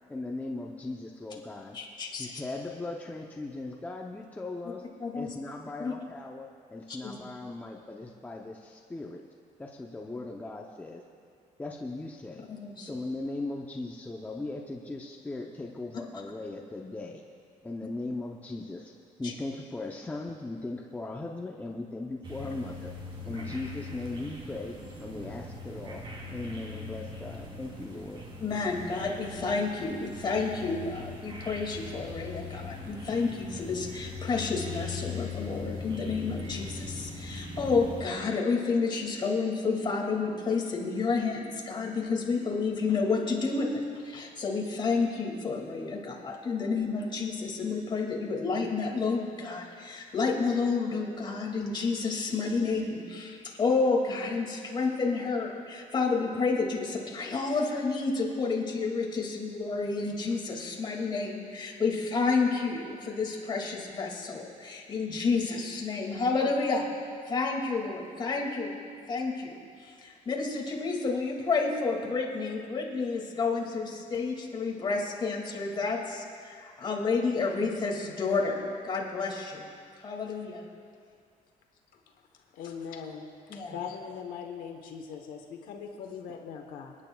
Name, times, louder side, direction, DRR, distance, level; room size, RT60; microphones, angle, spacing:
voice 1, 0.1-1.8 2.2-4.8 5.1-9.2 9.6-11.0 11.6-12.5 12.8-17.2 17.6-18.9 19.2-22.9 23.2-26.0 26.3-28.2, left 2 dB, 10° left, 0 dB, 0.6 m, -38 dB
voice 2, 1.7-2.3 5.0-5.3 5.8-5.9 6.9-7.1 12.5-12.9 19.2-19.3 23.2-23.4 28.4-66.9 67.3-79.7 80.0-80.6 83.5-83.8, left 4 dB, 30° left, -1 dB, 2.2 m, -30 dB
sound 1, 22.2-38.0, left 3 dB, 35° right, 2.4 m, -41 dB
voice 3, 82.5-83.3 83.6-87.0, left 6 dB, 80° left, 3 dB, 1.0 m, -40 dB
29.5 x 10.0 x 2.3 m, 2.2 s
cardioid pair, 140°, 14 cm